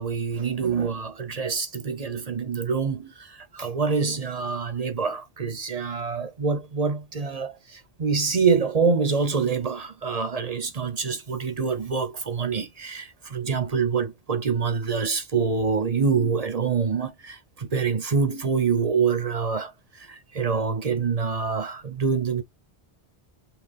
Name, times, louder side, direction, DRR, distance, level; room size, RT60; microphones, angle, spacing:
voice 1, 0.0-19.7 20.0-22.4, right 5 dB, 40° right, 0.8 m, -26 dB
5.6 x 2.3 x 3.5 m
omnidirectional pair, 1.0 m